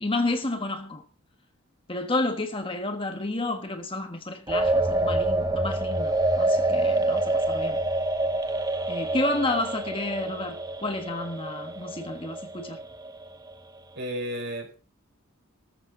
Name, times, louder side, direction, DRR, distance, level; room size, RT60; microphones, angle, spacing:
voice 1, 0.0-1.0 1.9-7.8 8.9-12.8, left 2 dB, 25° left, 1.4 m, -30 dB
sound 1, 4.5-13.5, right 2 dB, 15° right, 0.9 m, -27 dB
voice 2, 13.9-14.7, equal, 55° right, 4.9 m, -32 dB
14.5 x 13.5 x 3.9 m
head